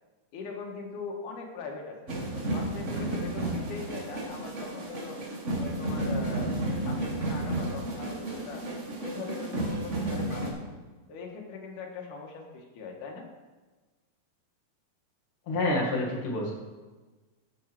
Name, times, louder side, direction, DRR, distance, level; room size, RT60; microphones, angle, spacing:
voice 1, 0.3-2.2 2.5-5.2 5.6-6.5 6.8-8.7 9.0-10.6 11.1-13.3, left 4 dB, 85° left, 1 dB, 2.7 m, -41 dB
sound 1, 2.1-10.5, right 1 dB, 60° right, 0.7 m, -32 dB
voice 2, 15.5-16.5, left 2 dB, 45° left, -3 dB, 2.4 m, -28 dB
13.5 x 4.9 x 4.6 m, 1.3 s
omnidirectional pair, 3.6 m